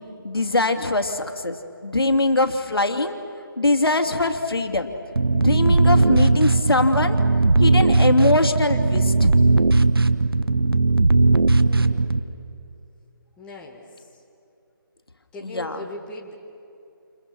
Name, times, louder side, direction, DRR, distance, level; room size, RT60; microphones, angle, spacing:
voice 1, 0.2-3.1 3.6-4.9 5.3-7.2 7.6-9.3 15.4-15.8, left 2 dB, 80° left, 6 dB, 2.8 m, -22 dB
sound 1, 5.2-12.2, right 3 dB, 80° right, 1.3 m, -18 dB
voice 2, 11.5-12.2 13.4-14.2 15.3-16.3, left 2 dB, 10° left, -2 dB, 2.0 m, -40 dB
30.0 x 29.0 x 6.3 m, 2.8 s
figure-of-eight pair, 160°, 12 cm